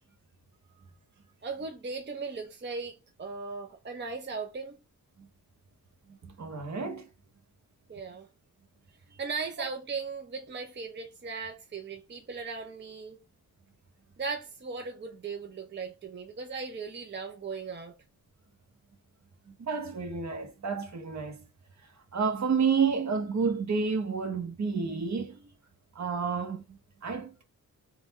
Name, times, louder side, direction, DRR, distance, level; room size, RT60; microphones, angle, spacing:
voice 1, 1.4-4.8 7.9-8.3 9.2-13.2 14.2-17.9, right 4 dB, 30° right, 0.6 m, -37 dB
voice 2, 6.2-7.1 19.6-21.4 22.1-25.3 26.0-26.6 27.0-27.4, right 5 dB, 50° right, 0.9 m, -30 dB
3.9 x 2.2 x 4.0 m
wide cardioid pair, 115°, 35 cm